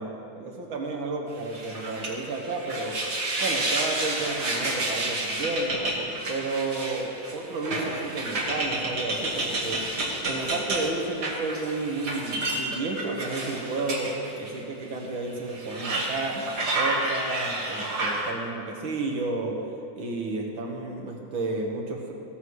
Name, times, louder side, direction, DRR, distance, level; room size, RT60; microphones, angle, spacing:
voice 1, 0.0-3.0 3.4-9.8 10.3-16.5 16.8-19.6 20.0-22.1, right 3 dB, 75° right, 0 dB, 2.2 m, -32 dB
sound 1, 1.5-14.6 15.0-15.1 15.5-18.3, right 2 dB, 50° right, 2.2 m, -30 dB
16.5 x 13.0 x 3.2 m, 2.6 s
omnidirectional pair, 2.2 m